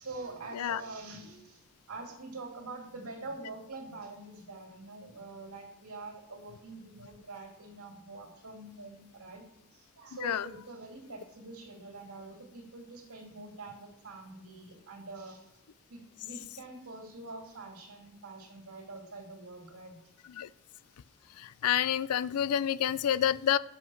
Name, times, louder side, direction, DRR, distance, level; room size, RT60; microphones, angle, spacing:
voice 1, 0.0-1.6 1.9-9.4 9.7-15.5 15.9-20.0, right 3 dB, 80° right, 2 dB, 2.6 m, -45 dB
voice 2, 21.4-23.6, left 10 dB, 75° left, 18 dB, 0.4 m, -28 dB
7.7 x 5.8 x 6.3 m, 0.87 s
head